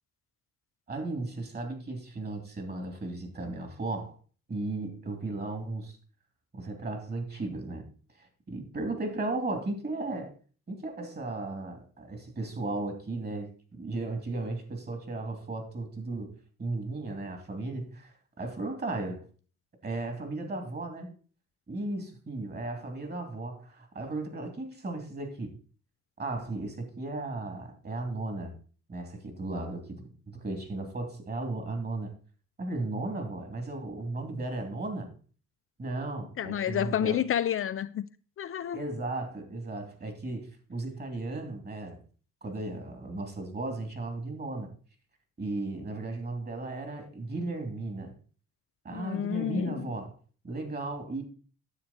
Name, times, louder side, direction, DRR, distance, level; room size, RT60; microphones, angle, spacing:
voice 1, 0.9-4.2 4.5-6.0 6.5-7.9 8.1-10.3 10.7-19.2 19.8-21.1 21.7-25.5 26.2-28.6 28.9-32.1 32.6-35.1 35.8-37.2 38.7-42.0 42.4-44.7 45.4-48.2 48.8-50.1 50.4-51.2, right 2 dB, 35° right, 2.8 m, -35 dB
voice 2, 36.4-38.1 38.4-38.8 48.9-49.9, left 10 dB, 45° left, 0.5 m, -30 dB
9.8 x 7.2 x 4.2 m
cardioid pair, 90°, 30 cm